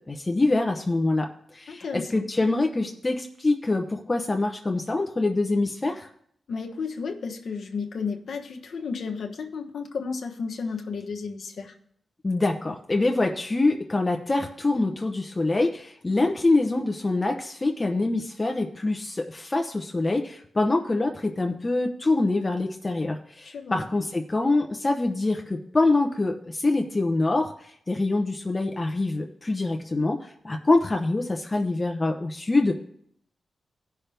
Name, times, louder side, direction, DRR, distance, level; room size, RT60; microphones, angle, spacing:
voice 1, 0.1-1.3 1.5-6.1 12.2-27.5 27.9-32.7, left 2 dB, 25° left, 3 dB, 0.8 m, -25 dB
voice 2, 1.7-2.1 6.5-11.7 23.4-23.8, left 5 dB, 70° left, 3 dB, 1.1 m, -33 dB
16.5 x 5.8 x 3.4 m, 0.66 s
wide cardioid pair, 100°, 0 cm